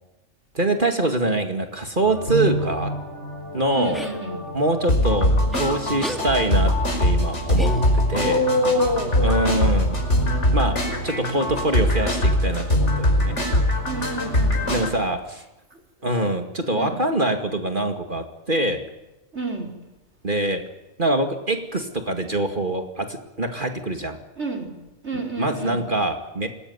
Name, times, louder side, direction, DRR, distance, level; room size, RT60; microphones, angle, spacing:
voice 1, 0.5-2.9 3.5-4.0 4.5-8.4 9.2-9.9 10.5-13.4 14.7-15.4 16.0-18.9 20.2-20.7 21.0-24.2 25.4-26.5, right 2 dB, 40° right, 5 dB, 2.4 m, -24 dB
sound 1, 2.0-14.9, left 1 dB, 60° left, 5.7 m, -22 dB
voice 2, 3.7-4.5 8.2-9.8 13.8-14.8 15.7-15.8 16.7-17.0 19.3-19.7 24.4-24.7 25.0-25.9, equal, 60° right, 2 dB, 5.4 m, -27 dB
sound 2, 3.9-4.2 5.5-5.7 6.0-6.3 7.6-8.2, equal, ahead, 2.3 m, -33 dB
27.5 x 20.0 x 9.7 m, 0.97 s
omnidirectional pair, 1.3 m